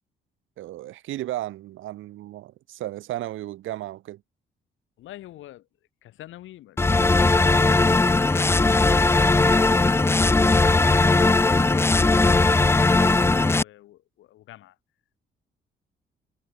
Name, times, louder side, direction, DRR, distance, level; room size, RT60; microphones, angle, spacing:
voice 1, 0.6-4.2, right 14 dB, 85° right, 2.8 m, -34 dB
voice 2, 5.0-5.7 6.0-8.8 10.6-14.8, left 14 dB, 85° left, 2.8 m, -46 dB
sound 1, 6.8-13.6, left 3 dB, 10° left, 0.5 m, -18 dB
cardioid pair, 90°, 20 cm